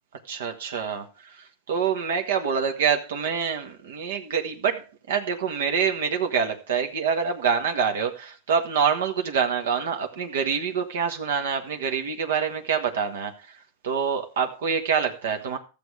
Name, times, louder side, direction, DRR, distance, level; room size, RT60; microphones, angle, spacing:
voice 1, 0.3-15.6, right 6 dB, 85° right, 1.5 m, -26 dB
13.5 x 7.1 x 4.8 m
supercardioid pair, 140°, 0 cm